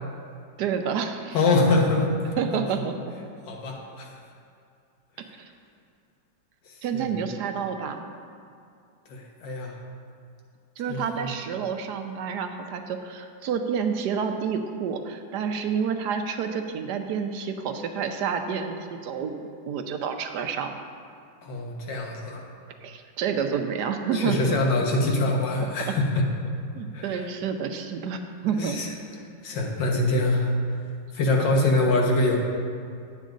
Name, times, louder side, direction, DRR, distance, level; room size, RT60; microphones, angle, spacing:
voice 1, 0.6-1.4 2.4-3.1 6.8-8.0 10.8-20.9 22.8-24.6 26.7-28.8, right 6 dB, 75° right, 6 dB, 1.2 m, -29 dB
voice 2, 1.3-2.6 3.4-4.2 6.7-7.3 9.1-9.7 10.9-11.3 21.4-22.4 24.1-26.2 26.9-27.3 28.6-28.9 29.4-30.5 31.1-32.4, left 2 dB, 80° left, 0 dB, 1.9 m, -24 dB
10.5 x 8.2 x 3.9 m, 2.4 s
omnidirectional pair, 1.9 m